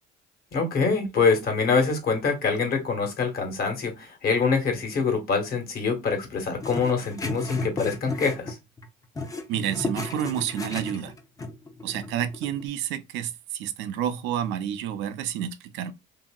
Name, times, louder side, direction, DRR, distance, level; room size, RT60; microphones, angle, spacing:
voice 1, 0.5-8.6, left 5 dB, 55° left, 1.3 m, -25 dB
sound 1, 6.6-8.9 9.2-12.6, left 2 dB, 20° left, 0.6 m, -34 dB
voice 2, 9.5-11.1 11.8-15.9, right 10 dB, 75° right, 0.5 m, -29 dB
2.7 x 2.7 x 2.2 m
cardioid pair, 100°, 19 cm